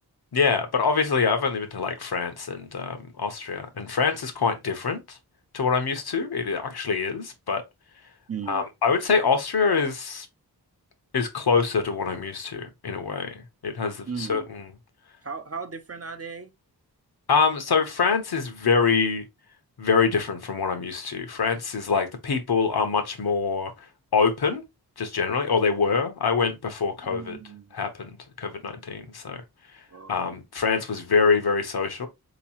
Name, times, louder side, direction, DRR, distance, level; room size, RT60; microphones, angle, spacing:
voice 1, 0.3-5.2 5.5-7.6 8.5-10.3 11.1-14.6 17.3-19.2 19.8-23.7 24.1-24.6 25.0-27.4 27.7-28.1 28.4-29.4 30.1-32.1, left 5 dB, 70° left, 1.0 m, -25 dB
voice 2, 8.3-8.6 14.1-14.5 15.2-16.5 27.0-27.7 29.9-30.4, right 6 dB, 40° right, 0.7 m, -36 dB
3.4 x 3.0 x 2.8 m
cardioid pair, 50°, 39 cm